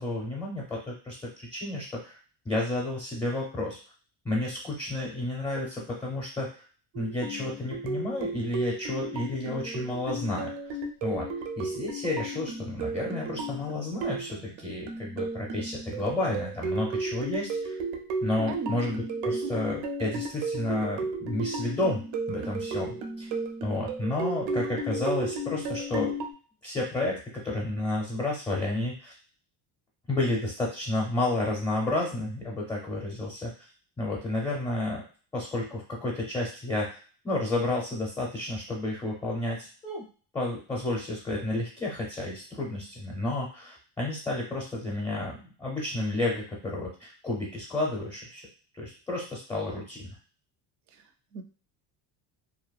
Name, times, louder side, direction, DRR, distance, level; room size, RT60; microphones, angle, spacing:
voice 1, 0.0-2.2 2.4-3.8 4.2-6.6 6.9-10.7 11.0-11.3 11.6-17.8 18.2-23.3 23.6-26.1 26.6-29.2 30.1-33.7 34.0-35.0 35.3-37.0 37.2-40.1 40.3-48.4 48.7-50.1, left 2 dB, 10° left, -4 dB, 0.5 m, -31 dB
sound 1, 6.9-26.3, right 2 dB, 85° right, 0.6 m, -34 dB
voice 2, 18.5-18.8 19.3-19.5 50.9-51.4, right 6 dB, 45° right, 8 dB, 0.4 m, -38 dB
2.7 x 2.0 x 2.3 m, 0.39 s
cardioid pair, 130°, 43 cm